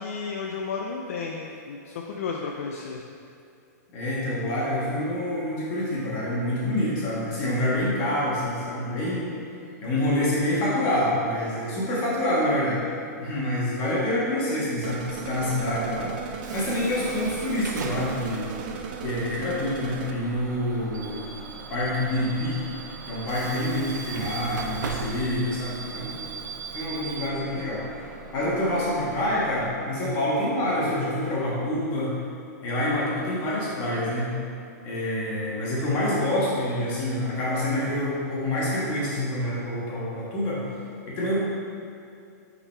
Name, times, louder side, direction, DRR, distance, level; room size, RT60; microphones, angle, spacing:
voice 1, 0.0-3.0, left 5 dB, 50° left, 1 dB, 0.4 m, -33 dB
voice 2, 3.9-9.3 9.8-12.8 13.2-18.5 19.0-21.3 21.7-22.6 23.1-26.2 26.7-32.1 32.6-34.4 34.8-40.6 41.1-41.4, left 1 dB, 25° left, -6 dB, 1.5 m, -27 dB
sound 1, 14.8-20.1, right 7 dB, 35° right, 0.3 m, -37 dB
Bus / Alarm, 15.1-29.7, right 5 dB, 90° right, 0.6 m, -39 dB
6.9 x 4.0 x 4.4 m, 2.5 s
hypercardioid pair, 175°, 9 cm